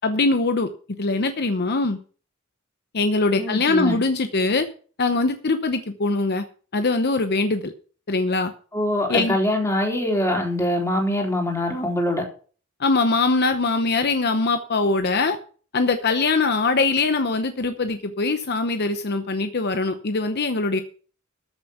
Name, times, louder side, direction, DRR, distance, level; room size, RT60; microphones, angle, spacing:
voice 1, 0.0-0.7 1.0-2.0 2.9-4.7 5.0-6.4 6.7-7.7 8.1-8.5 9.1-9.4 12.8-15.4 15.7-20.8, left 3 dB, 50° left, 8 dB, 0.8 m, -22 dB
voice 2, 3.4-4.0 8.7-12.2, left 1 dB, 15° left, 0 dB, 3.7 m, -23 dB
13.5 x 7.2 x 5.8 m, 0.41 s
head